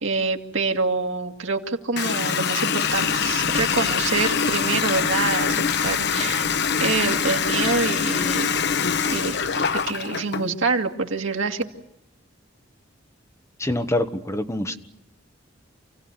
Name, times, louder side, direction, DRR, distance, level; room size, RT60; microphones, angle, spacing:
voice 1, 0.0-6.5 6.8-8.5 9.1-9.4 9.9-11.6, right 4 dB, 85° right, 3 dB, 2.2 m, -26 dB
Water tap faucet, 2.0-10.5, left 6 dB, 60° left, 0.9 m, -24 dB
sound 1, 2.8-9.9, right 1 dB, 40° left, 5.1 m, -40 dB
voice 2, 13.6-14.7, left 1 dB, 15° left, 7 dB, 1.4 m, -25 dB
28.5 x 16.5 x 9.7 m, 0.90 s
head